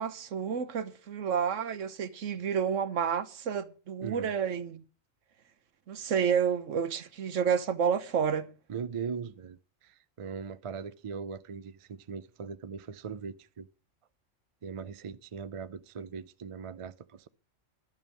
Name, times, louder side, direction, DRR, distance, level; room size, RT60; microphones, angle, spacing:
voice 1, 0.0-4.8 5.9-8.5, right 7 dB, 70° right, 1.3 m, -30 dB
voice 2, 4.0-4.3 8.7-13.7 14.6-17.3, right 6 dB, 55° right, 0.3 m, -40 dB
11.5 x 5.4 x 8.3 m
omnidirectional pair, 1.3 m